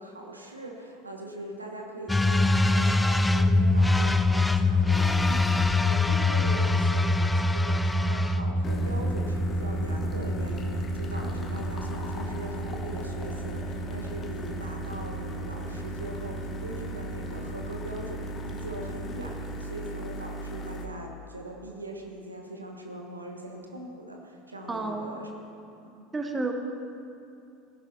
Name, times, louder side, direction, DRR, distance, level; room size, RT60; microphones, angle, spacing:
voice 1, 0.0-25.3 25.8-26.1, right 1 dB, 85° right, 2 dB, 1.3 m, -41 dB
sound 1, 2.1-19.6, left 2 dB, 10° left, 0.5 m, -26 dB
sound 2, 4.9-5.9 8.6-20.9, right 1 dB, 30° left, 1.6 m, -37 dB
voice 2, 24.7-25.2 26.1-26.5, right 3 dB, 15° right, 4 dB, 1.4 m, -31 dB
16.5 x 11.0 x 4.2 m, 2.6 s
figure-of-eight pair, 75°, 0 cm